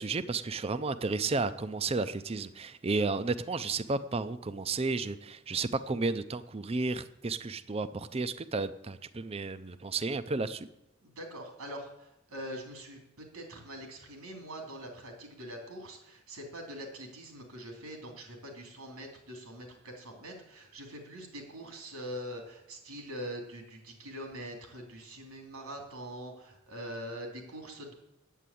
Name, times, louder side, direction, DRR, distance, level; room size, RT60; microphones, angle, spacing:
voice 1, 0.0-10.7, right 3 dB, 25° right, 13 dB, 0.5 m, -32 dB
voice 2, 11.0-27.9, equal, 90° right, 2 dB, 3.2 m, -43 dB
9.2 x 8.7 x 8.4 m, 0.84 s
head